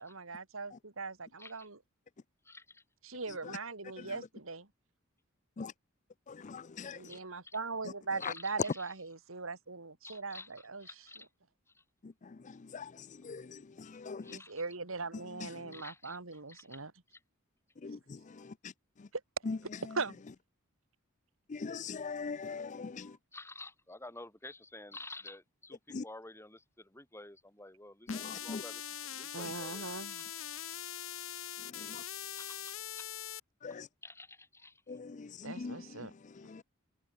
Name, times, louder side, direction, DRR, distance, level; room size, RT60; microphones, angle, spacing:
voice 1, 0.0-1.8 3.0-4.7 6.9-10.9 14.2-16.9 19.9-20.2 29.3-30.2 35.4-36.1, right 4 dB, 75° right, 2.4 m, -40 dB
voice 2, 2.4-2.8 7.0-7.6 8.2-8.9 10.0-11.3 11.7-11.8 14.2-14.6 15.7-16.8 17.1-17.2 18.3-18.5 23.0-30.2 30.5-30.7 31.1-31.2 31.9-32.0 32.3-33.1 34.0-34.8, left 2 dB, 15° left, 7.2 m, -51 dB
voice 3, 6.3-7.0 12.7-14.4 17.8-18.0 21.5-23.1 25.9-26.0 28.1-28.6 31.9-32.0 33.6-33.9 34.9-35.8 36.5-36.6, left 4 dB, 35° left, 0.5 m, -41 dB
sound 1, 28.1-33.4, left 11 dB, 75° left, 3.3 m, -42 dB
head